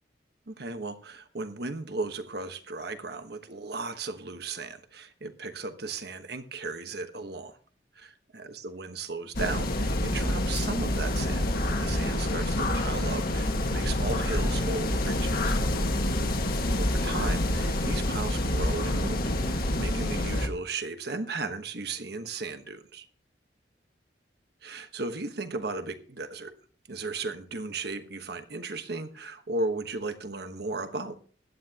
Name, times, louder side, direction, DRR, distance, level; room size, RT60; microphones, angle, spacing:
voice 1, 0.5-7.5 7.9-15.6 16.7-19.2 19.5-23.1 24.6-26.5 26.9-31.1, right 3 dB, 60° right, 8 dB, 1.2 m, -36 dB
sound 1, 9.3-20.5, left 1 dB, 55° left, 1.5 m, -27 dB
16.0 x 11.0 x 2.9 m, 0.44 s
head